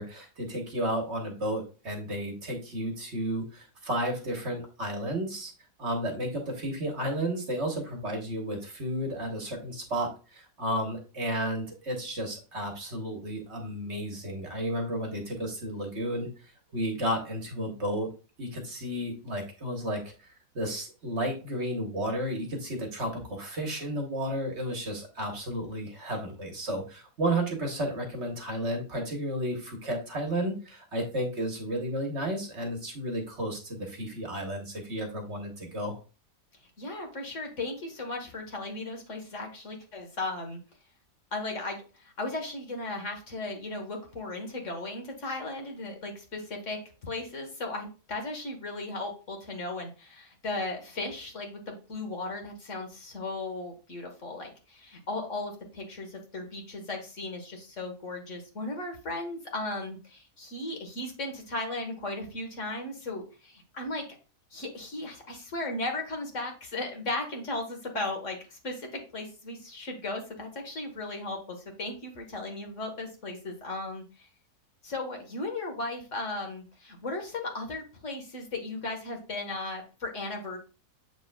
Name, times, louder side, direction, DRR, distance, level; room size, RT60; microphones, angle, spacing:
voice 1, 0.0-5.5 5.8-18.1 18.4-36.0, right 1 dB, 45° right, 3 dB, 1.4 m, -32 dB
voice 2, 36.8-40.6 41.3-64.0 64.5-74.3 74.8-80.6, left 2 dB, 50° left, 2 dB, 1.7 m, -36 dB
7.5 x 6.0 x 2.3 m, 0.35 s
omnidirectional pair, 1.7 m